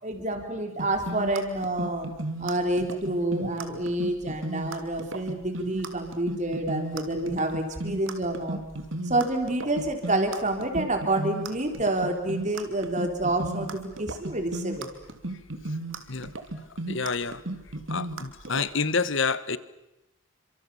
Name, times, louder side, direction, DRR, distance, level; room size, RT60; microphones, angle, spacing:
voice 1, 0.0-2.1 2.4-8.6 9.0-14.9, right 1 dB, 35° right, 5 dB, 4.1 m, -28 dB
sound 1, 0.8-18.7, right 2 dB, 70° right, 2.8 m, -34 dB
voice 2, 16.7-17.4 17.9-19.6, left 4 dB, 65° left, 15 dB, 1.4 m, -28 dB
30.0 x 25.5 x 7.2 m, 0.92 s
head